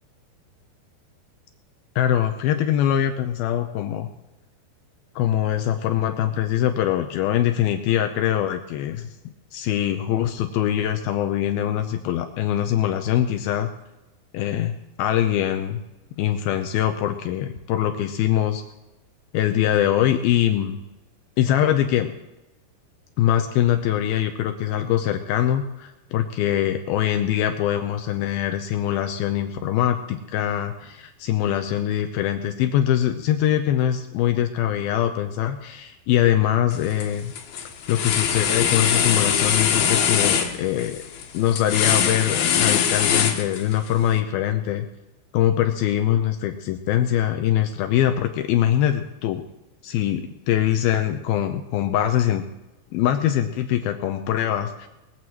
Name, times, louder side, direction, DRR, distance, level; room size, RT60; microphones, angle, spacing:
voice 1, 2.0-4.1 5.2-9.1 9.5-13.7 14.3-15.8 16.2-18.6 19.3-20.8 21.4-22.1 23.2-37.3 37.9-41.0 41.3-44.9 45.3-49.4 49.8-52.4 52.9-54.9, left 11 dB, 90° left, 7 dB, 2.1 m, -23 dB
sound 1, 36.7-37.0 37.4-43.9, left 8 dB, 65° left, 3.0 m, -22 dB
21.0 x 15.5 x 3.0 m, 0.99 s
omnidirectional pair, 5.2 m